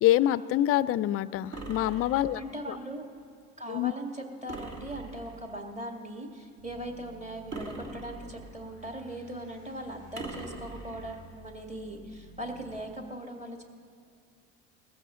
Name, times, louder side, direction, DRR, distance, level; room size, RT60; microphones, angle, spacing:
voice 1, 0.0-2.4 2.7-2.8 3.7-3.9, left 13 dB, 40° left, 18 dB, 0.4 m, -25 dB
sound 1, 1.5-2.6 4.5-5.5 7.5-8.6 10.2-11.2, right 3 dB, 45° right, 2.3 m, -42 dB
voice 2, 2.4-3.1 3.6-13.6, right 1 dB, 20° right, 3 dB, 1.9 m, -40 dB
sound 2, 6.6-12.8, right 1 dB, 60° right, 4.5 m, -53 dB
19.5 x 14.5 x 3.7 m, 2.4 s
hypercardioid pair, 65°, 38 cm